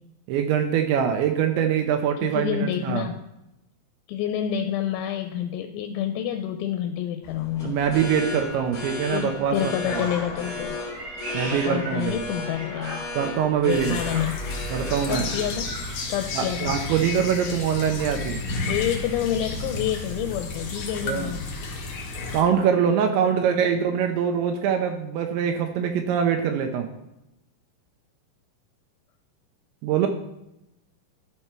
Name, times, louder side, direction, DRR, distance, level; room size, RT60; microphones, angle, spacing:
voice 1, 0.3-3.0 7.6-10.1 11.3-12.2 13.2-14.0 14.7-15.3 16.3-18.4 21.0-21.3 22.3-26.9 29.8-30.1, right 8 dB, 80° right, 4 dB, 2.8 m, -23 dB
voice 2, 2.2-3.2 4.1-7.8 9.1-10.8 11.5-13.1 13.5-14.4 15.1-15.7 16.1-16.8 18.6-21.5 23.0-23.1 30.0-30.1, left 10 dB, 85° left, 6 dB, 2.9 m, -28 dB
sound 1, 7.2-16.8, left 3 dB, 35° left, 1.4 m, -35 dB
Meow, 10.8-13.4 13.9-16.0, right 2 dB, 60° right, 1.3 m, -39 dB
sound 2, 13.7-22.4, left 3 dB, 65° left, 1.9 m, -32 dB
12.5 x 4.5 x 4.4 m, 0.90 s
omnidirectional pair, 5.4 m